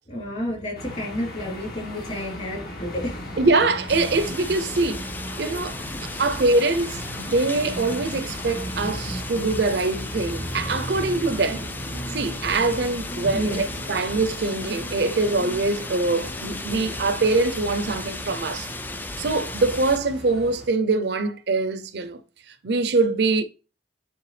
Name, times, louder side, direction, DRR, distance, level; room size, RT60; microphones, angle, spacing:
voice 1, 0.1-3.4 5.4-5.6 5.9-6.1 7.2-7.3 13.1-13.6 14.1-14.2, left 1 dB, 35° left, 3.2 m, -32 dB
sound 1, 0.8-20.7, equal, 55° left, 1.9 m, -37 dB
voice 2, 3.4-5.0 5.4-11.6 12.1-18.7 19.2-22.2 22.6-23.4, right 3 dB, 65° right, 0.6 m, -23 dB
sound 2, 3.9-20.0, left 2 dB, 10° left, 0.4 m, -36 dB
sound 3, 4.5-17.3, left 2 dB, 80° left, 2.8 m, -46 dB
9.5 x 3.5 x 3.3 m
head